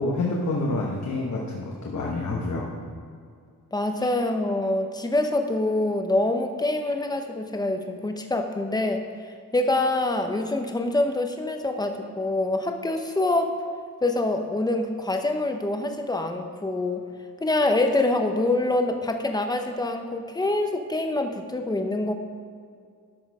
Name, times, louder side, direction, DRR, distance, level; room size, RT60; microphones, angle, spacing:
voice 1, 0.0-2.7, left 2 dB, 55° left, -3 dB, 1.2 m, -27 dB
voice 2, 3.7-13.5 14.0-17.1 17.4-22.1, left 2 dB, 10° left, 5 dB, 0.7 m, -25 dB
12.5 x 6.3 x 4.8 m, 2.2 s
wide cardioid pair, 175°, 34 cm